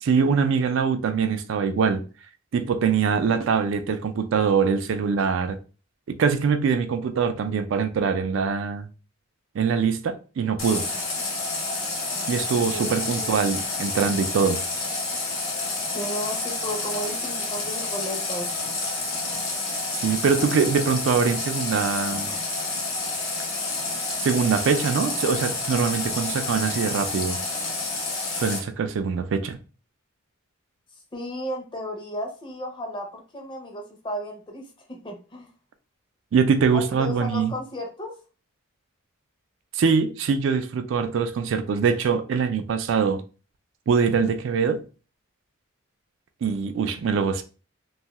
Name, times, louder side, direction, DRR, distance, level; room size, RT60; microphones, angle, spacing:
voice 1, 0.0-2.0 2.5-5.6 6.1-8.9 9.5-10.9 12.3-14.6 20.0-22.3 24.2-27.4 28.3-29.6 36.3-37.5 39.7-43.2 43.9-44.8 46.4-47.4, right 6 dB, 65° right, 0.3 m, -23 dB
Water tap faucet, 10.6-28.6, left 3 dB, 85° left, 0.9 m, -29 dB
voice 2, 12.7-13.6 15.8-18.5 31.1-35.5 36.7-38.2, equal, 25° left, 0.6 m, -34 dB
2.6 x 2.3 x 2.9 m
head